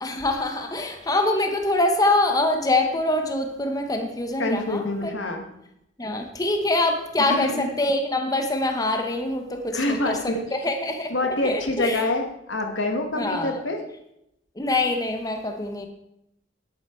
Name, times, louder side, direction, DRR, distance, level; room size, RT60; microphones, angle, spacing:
voice 1, 0.0-5.1 6.0-12.1 13.1-13.6 14.5-15.9, left 2 dB, 20° left, 4 dB, 1.0 m, -25 dB
voice 2, 4.4-5.4 7.2-7.7 9.7-10.2 11.1-13.8, left 2 dB, 80° left, 4 dB, 1.5 m, -26 dB
10.5 x 8.7 x 4.4 m, 0.82 s
head